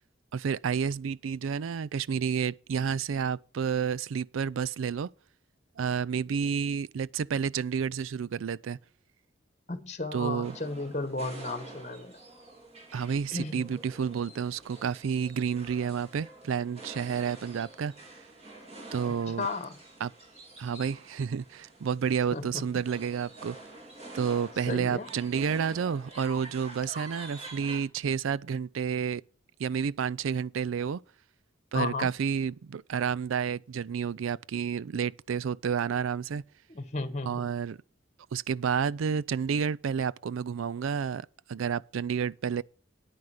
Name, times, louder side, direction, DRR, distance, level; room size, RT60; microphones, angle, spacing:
voice 1, 0.3-5.1 5.8-8.8 10.1-10.6 12.9-17.9 18.9-19.5 20.0-20.1 20.6-23.6 24.1-29.2 29.6-31.0 31.7-36.4 37.2-37.8 38.3-42.6, right 6 dB, 80° right, 0.4 m, -30 dB
voice 2, 9.7-12.2 13.3-13.7 19.4-19.7 22.3-22.6 24.7-25.1 31.7-32.1 36.7-37.5, left 3 dB, 35° left, 1.2 m, -34 dB
sound 1, 10.4-27.8, right 2 dB, 30° right, 3.2 m, -47 dB
9.5 x 9.4 x 4.9 m
head